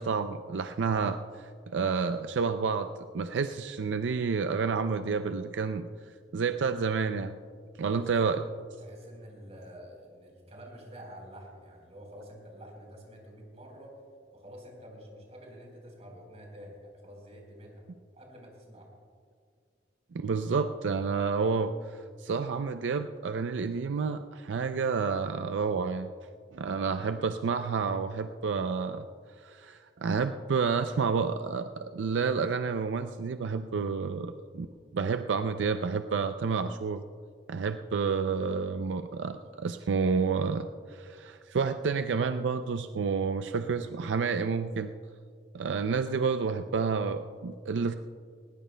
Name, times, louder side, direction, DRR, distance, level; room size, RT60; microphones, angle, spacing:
voice 1, 0.0-2.9 3.1-5.9 6.3-7.3 7.8-8.4 20.1-26.1 26.5-29.0 29.4-34.7 34.9-37.0 37.5-44.9 45.5-47.9, right 5 dB, 85° right, 9 dB, 0.4 m, -30 dB
voice 2, 7.9-8.3 8.8-14.0 14.3-17.8 18.1-18.9, equal, 40° right, 0 dB, 3.9 m, -48 dB
20.0 x 19.0 x 2.2 m, 2.1 s
head